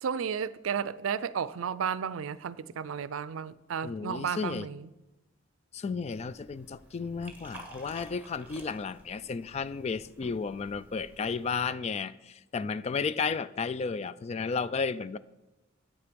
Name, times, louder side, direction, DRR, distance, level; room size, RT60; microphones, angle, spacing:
voice 1, 0.0-4.9, right 7 dB, 85° right, 0.4 m, -33 dB
voice 2, 3.8-4.7 5.7-15.2, left 5 dB, 30° left, 0.3 m, -33 dB
Liquid, 6.1-11.7, right 2 dB, 10° right, 1.5 m, -52 dB
9.8 x 8.2 x 5.1 m
head